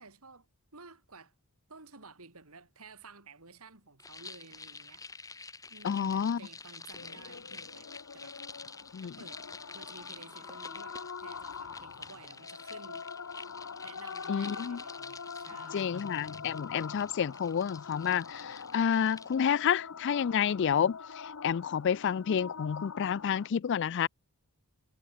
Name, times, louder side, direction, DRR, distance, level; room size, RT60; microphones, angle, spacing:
voice 1, 0.0-1.3 1.7-8.4 9.0-9.4 9.7-13.0 13.7-16.0 16.3-16.4, right 3 dB, 75° right, 4.3 m, -53 dB
sound 1, 4.0-19.4, left 4 dB, 15° left, 1.5 m, -49 dB
voice 2, 5.8-6.4 8.9-9.1 14.3-14.8 15.7-24.1, left 8 dB, 55° left, 0.3 m, -29 dB
sound 2, 6.9-23.5, left 5 dB, 70° left, 0.9 m, -44 dB
head